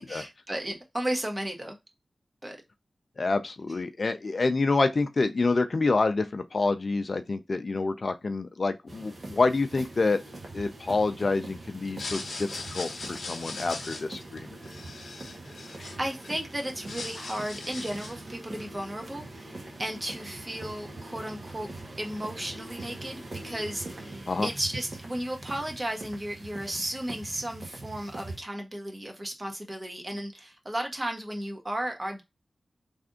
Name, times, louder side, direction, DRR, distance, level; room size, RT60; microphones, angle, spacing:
voice 1, 0.1-1.8 2.4-2.6 15.7-21.7 22.0-32.2, right 1 dB, 25° right, 1.2 m, -34 dB
voice 2, 3.2-10.2 10.5-14.5 24.3-24.5, left 3 dB, 55° left, 0.5 m, -27 dB
sound 1, 8.9-28.4, right 2 dB, 60° right, 1.1 m, -43 dB
sound 2, 11.8-16.3 16.7-18.3, left 3 dB, 85° left, 1.0 m, -40 dB
3.4 x 2.6 x 3.7 m
cardioid pair, 50°, 0 cm